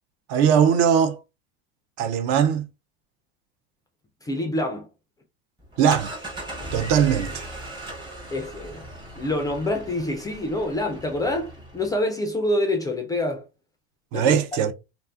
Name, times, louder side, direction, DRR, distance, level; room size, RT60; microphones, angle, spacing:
voice 1, 0.3-1.2 2.0-2.7 5.8-6.1 6.7-7.5 14.1-14.7, right 8 dB, 55° right, 0.5 m, -20 dB
voice 2, 4.2-4.9 8.3-8.9 9.2-13.5 14.1-14.4, left 1 dB, 10° left, 0.3 m, -26 dB
sound 1, 5.6-12.0, right 1 dB, 15° right, 0.8 m, -38 dB
2.5 x 2.4 x 2.3 m
supercardioid pair, 105°, 31 cm